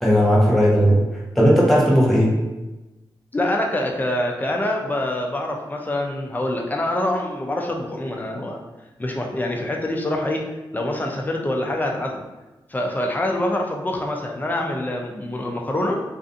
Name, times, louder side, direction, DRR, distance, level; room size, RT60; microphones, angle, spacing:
voice 1, 0.0-1.0 1.3-2.4, equal, 5° left, -5 dB, 0.8 m, -16 dB
voice 2, 3.3-8.6 9.0-10.4 10.7-12.2 12.7-16.0, left 1 dB, 20° left, 1 dB, 0.4 m, -25 dB
2.5 x 2.4 x 2.4 m, 1.1 s
wide cardioid pair, 80°, 9 cm